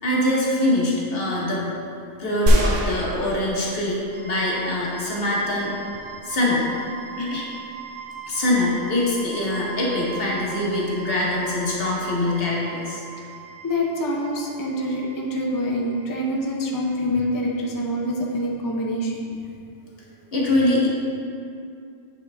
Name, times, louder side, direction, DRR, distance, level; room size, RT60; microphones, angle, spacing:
voice 1, 0.0-1.7 2.2-4.0 4.3-5.8 6.2-6.7 7.2-7.5 8.3-13.0 20.3-20.9, left 1 dB, 50° left, -4 dB, 1.3 m, -23 dB
sound 1, 2.5-4.2 4.7-4.8, equal, 80° right, 1.2 m, -22 dB
sound 2, 4.1-18.0, right 7 dB, 40° right, 1.8 m, -41 dB
voice 2, 13.6-19.2, equal, 30° left, -2 dB, 0.4 m, -25 dB
8.3 x 4.3 x 3.4 m, 2.4 s
omnidirectional pair, 1.3 m